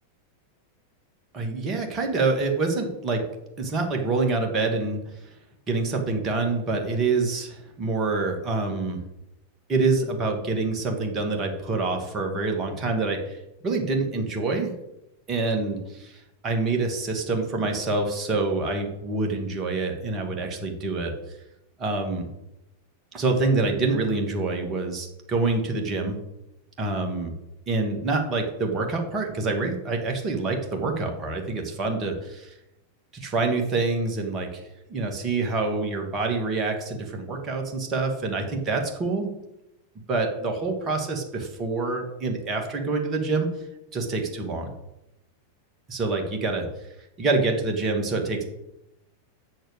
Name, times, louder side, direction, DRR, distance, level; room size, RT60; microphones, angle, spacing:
voice 1, 1.3-3.3 3.6-5.0 5.7-9.0 9.7-13.4 13.6-14.7 15.3-16.1 16.4-21.1 21.8-22.3 23.1-26.2 26.8-27.3 27.7-32.5 33.1-34.6 34.9-39.3 40.1-43.5 43.9-44.7 45.9-46.7 47.2-48.5, right 3 dB, 25° right, 3 dB, 2.3 m, -26 dB
7.8 x 6.7 x 8.3 m, 0.88 s
figure-of-eight pair, 90°, 0 cm